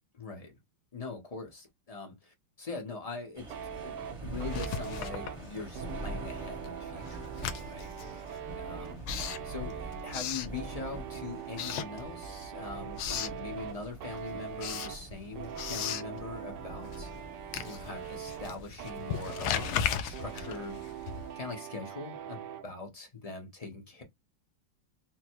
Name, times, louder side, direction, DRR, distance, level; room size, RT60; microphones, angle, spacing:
voice 1, 0.1-0.6 0.9-3.5 3.8-9.0 9.4-17.1 17.7-20.8 21.4-24.0, left 3 dB, 55° left, 0.4 m, -42 dB
sound 1, 3.4-21.3, right 1 dB, 25° right, 0.7 m, -45 dB
sound 2, 3.5-22.7, right 9 dB, 75° right, 1.0 m, -43 dB
Writing, 4.4-6.0 6.3-11.1 11.5-12.5 12.7-13.4 13.8-21.5, left 9 dB, 80° left, 1.4 m, -37 dB
3.9 x 2.2 x 4.4 m
omnidirectional pair, 2.4 m